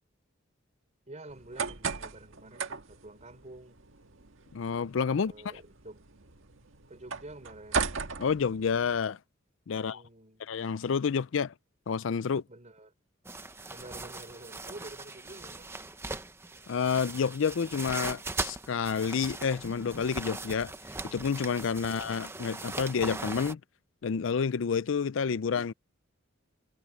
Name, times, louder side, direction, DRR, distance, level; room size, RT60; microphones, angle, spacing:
voice 1, 1.1-3.8 5.1-6.0 6.9-7.9 9.7-10.5 12.5-12.9 13.7-15.7, right 2 dB, 35° right, 3.6 m, -49 dB
sound 1, 1.3-9.0, right 5 dB, 80° right, 1.7 m, -38 dB
voice 2, 4.5-5.3 8.2-9.2 9.7-10.0 10.5-11.5 11.9-12.4 16.7-20.7 21.0-23.6 24.0-25.7, left 6 dB, 70° left, 0.5 m, -29 dB
sound 2, 13.2-23.5, right 3 dB, 15° right, 0.9 m, -40 dB
head